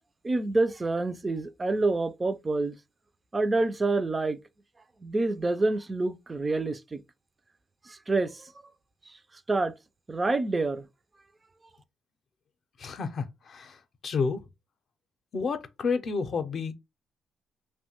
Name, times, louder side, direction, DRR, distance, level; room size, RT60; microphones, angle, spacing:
voice 1, 0.2-2.8 3.3-4.4 5.0-7.0 7.9-8.5 9.1-9.2 9.5-9.7 10.1-10.9, right 2 dB, 25° right, 0.3 m, -27 dB
voice 2, 12.8-13.8 14.0-14.4 15.3-16.7, left 5 dB, 55° left, 0.5 m, -30 dB
2.9 x 2.1 x 2.8 m
cardioid pair, 90°, 0 cm